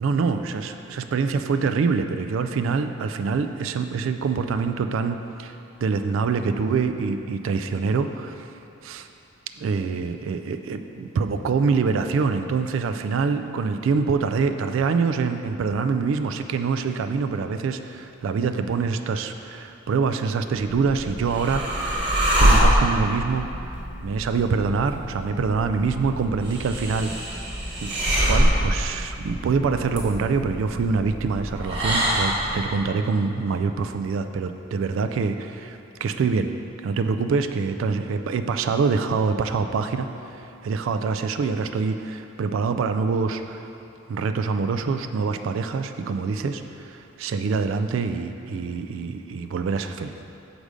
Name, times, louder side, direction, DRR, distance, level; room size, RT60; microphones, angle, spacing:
voice 1, 0.0-9.1 9.6-21.6 21.9-23.5 24.0-27.4 27.8-36.5 36.8-43.7 44.1-50.1, right 5 dB, 70° right, 8 dB, 0.3 m, -25 dB
sound 1, 20.6-32.7, equal, 25° right, 1.4 m, -25 dB
6.5 x 5.1 x 4.9 m, 2.8 s
head